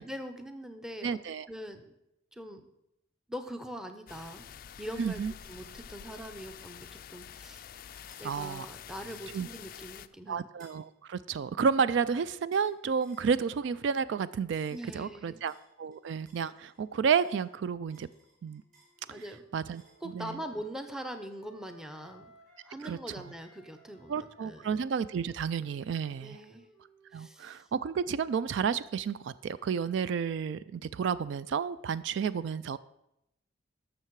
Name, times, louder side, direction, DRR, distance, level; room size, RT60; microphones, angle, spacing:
voice 1, 0.0-1.2 1.5-1.9 2.3-2.7 3.3-4.4 4.8-5.2 5.5-7.8 8.2-10.4 14.7-15.4 19.1-19.4 20.0-22.3 22.6-24.7 26.2-26.7 27.1-27.6, equal, 5° right, 7 dB, 0.6 m, -42 dB
voice 2, 1.0-1.5 5.0-5.3 8.2-8.7 9.3-9.5 10.3-18.1 18.4-18.6 19.1-19.2 19.5-19.8 20.1-20.4 22.8-23.2 24.1-26.4 27.1-32.8, right 6 dB, 65° right, 16 dB, 0.3 m, -31 dB
sound 1, 4.1-10.1, left 9 dB, 45° left, 0.3 m, -47 dB
sound 2, 5.4-5.7 6.4-6.6 7.9-8.3 9.1-9.4 10.6-10.8 12.5-12.7 13.0-13.3 14.5-14.9 15.4-16.8 17.2-20.0, right 2 dB, 40° right, 3.5 m, -62 dB
Wind instrument woodwind instrument, 18.4-22.8 23.1-27.7, right 2 dB, 80° right, 2.1 m, -61 dB
12.0 x 6.7 x 4.6 m, 0.84 s
head